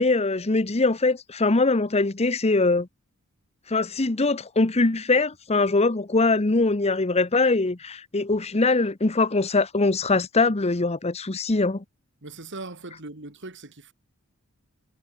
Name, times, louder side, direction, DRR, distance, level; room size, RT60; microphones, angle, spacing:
voice 1, 0.0-2.9 3.7-11.8, left 3 dB, 30° left, 0.9 m, -22 dB
voice 2, 12.2-13.9, right 2 dB, 55° right, 3.1 m, -39 dB
head